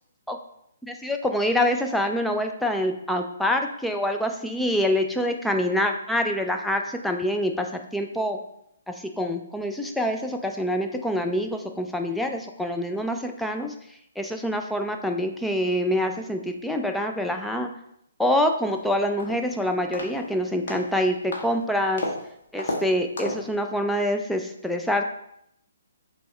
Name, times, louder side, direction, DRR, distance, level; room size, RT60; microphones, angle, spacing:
voice 1, 0.8-7.7 7.9-8.4 8.9-13.7 14.2-17.7 18.2-22.0 22.5-25.0, left 1 dB, ahead, 4 dB, 0.4 m, -26 dB
sound 1, 18.7-18.8 19.2-19.5 19.9-20.3 20.7-20.9 21.3-21.5 22.0-22.2 22.6-22.8 23.2-23.5, left 2 dB, 55° left, 1.0 m, -31 dB
6.7 x 2.4 x 3.2 m, 0.76 s
figure-of-eight pair, 130°, 0 cm